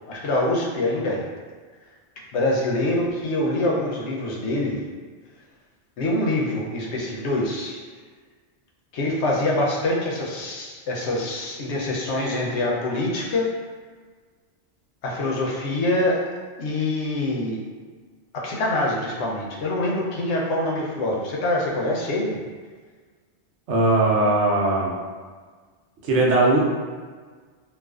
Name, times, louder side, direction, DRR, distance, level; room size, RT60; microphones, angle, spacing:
voice 1, 0.1-1.2 2.3-4.8 6.0-7.8 8.9-13.5 15.0-16.3 16.6-17.6 18.3-22.4, left 1 dB, 85° left, -3 dB, 0.9 m, -25 dB
voice 2, 23.7-24.9 26.0-26.6, right 2 dB, 90° right, -3 dB, 0.9 m, -19 dB
2.4 x 2.3 x 2.3 m, 1.5 s
omnidirectional pair, 1.1 m